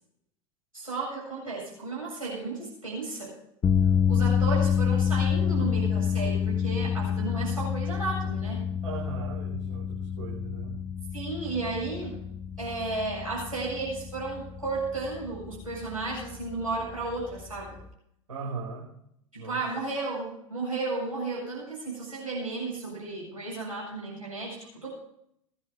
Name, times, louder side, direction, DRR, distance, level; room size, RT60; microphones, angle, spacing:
voice 1, 0.7-3.4 4.1-8.7 11.1-12.2 12.6-17.8 19.3-24.9, right 3 dB, 90° right, -5 dB, 7.3 m, -33 dB
sound 1, 3.6-17.9, left 7 dB, 15° left, 0.5 m, -28 dB
voice 2, 8.8-10.7 18.3-18.9 19.3-19.6, right 4 dB, 70° right, -4 dB, 4.8 m, -38 dB
20.5 x 10.5 x 3.9 m, 0.72 s
figure-of-eight pair, 85°, 17 cm